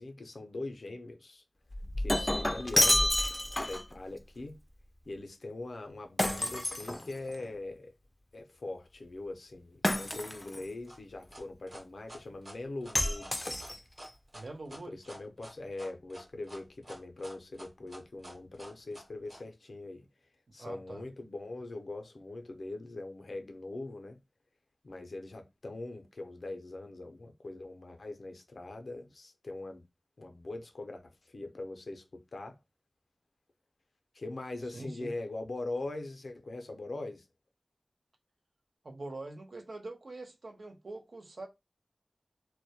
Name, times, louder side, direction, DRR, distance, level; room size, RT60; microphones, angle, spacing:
voice 1, 0.0-1.4 2.0-3.3 3.6-4.6 5.1-7.9 8.3-13.4 14.8-20.1 20.5-24.2 24.8-29.8 30.2-32.6 34.1-37.3, left 2 dB, 90° left, 0.5 m, -42 dB
Shatter, 1.7-3.9 6.2-7.5 9.8-10.6 13.0-14.1, left 1 dB, 25° left, 0.3 m, -29 dB
sound 1, 10.9-19.4, right 1 dB, 55° right, 1.0 m, -49 dB
voice 2, 14.3-14.9 20.6-21.0 34.7-35.1 38.8-41.5, right 2 dB, 80° right, 0.6 m, -44 dB
2.1 x 2.1 x 2.7 m
wide cardioid pair, 40°, 0 cm